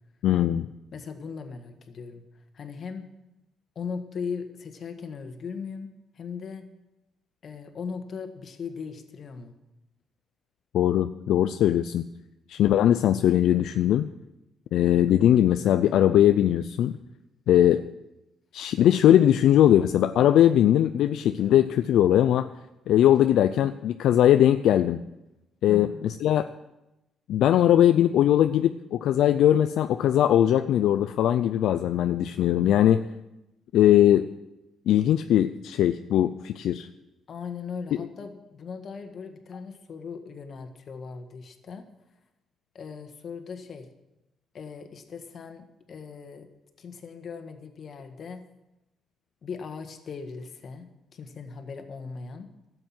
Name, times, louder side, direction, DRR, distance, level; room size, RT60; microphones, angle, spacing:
voice 1, 0.2-0.7 10.7-12.0 12.5-14.1 14.7-16.9 17.5-17.8 18.5-22.5 22.9-25.0 25.6-26.5 27.3-33.0 33.7-34.2 34.9-36.9, left 11 dB, 80° left, 9 dB, 0.4 m, -20 dB
voice 2, 0.9-2.2 2.5-3.0 3.7-6.6 7.4-9.5 25.7-26.0 37.3-41.9 42.7-43.9 44.5-46.5 46.8-48.4 49.4-52.5, left 5 dB, 55° left, 6 dB, 1.6 m, -38 dB
12.5 x 7.8 x 7.6 m, 0.97 s
cardioid pair, 90°, 0 cm